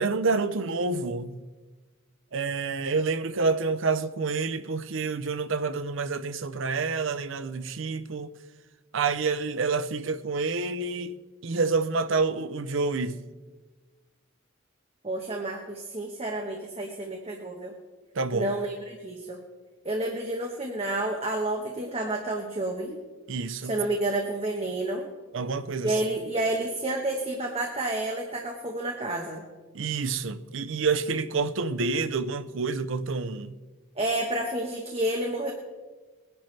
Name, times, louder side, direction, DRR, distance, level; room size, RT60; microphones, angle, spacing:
voice 1, 0.0-1.4 2.3-8.3 8.9-11.2 11.4-13.2 18.2-18.5 23.3-23.7 25.3-26.0 29.7-33.5, right 4 dB, 60° right, 0.6 m, -28 dB
voice 2, 15.0-17.7 18.3-19.4 19.8-23.0 23.6-25.1 25.8-29.4 34.0-35.5, right 1 dB, 30° right, 1.1 m, -30 dB
20.5 x 10.5 x 3.3 m
head